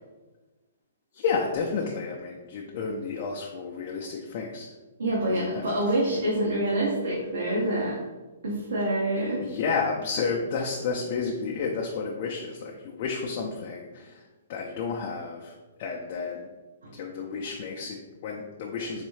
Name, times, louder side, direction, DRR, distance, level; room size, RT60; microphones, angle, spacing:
voice 1, 1.1-4.7 5.3-6.0 9.4-14.2 14.5-16.5 16.9-19.1, left 5 dB, 45° left, -1 dB, 0.4 m, -31 dB
voice 2, 5.0-8.0 8.4-9.4 16.8-16.9, right 1 dB, 90° right, -5 dB, 1.0 m, -26 dB
4.0 x 2.7 x 3.1 m, 1.2 s
hypercardioid pair, 150°, 0 cm